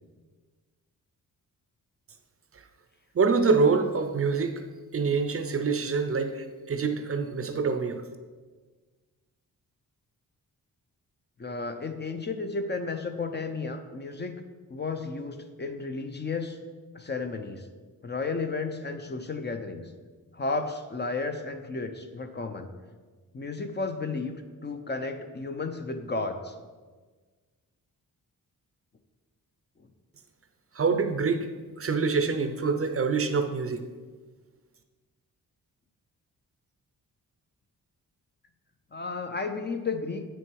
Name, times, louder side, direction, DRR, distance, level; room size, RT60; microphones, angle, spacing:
voice 1, 3.1-4.6 4.9-8.0 30.7-31.5 31.8-33.8, right 4 dB, 40° right, 7 dB, 0.6 m, -26 dB
voice 2, 11.4-14.4 14.7-16.6 16.9-17.7 18.0-19.9 20.3-22.7 23.3-24.4 24.6-26.5 29.8-29.9 38.9-40.2, left 3 dB, 30° left, 6 dB, 0.6 m, -33 dB
8.2 x 6.2 x 4.7 m, 1.4 s
wide cardioid pair, 130°, 36 cm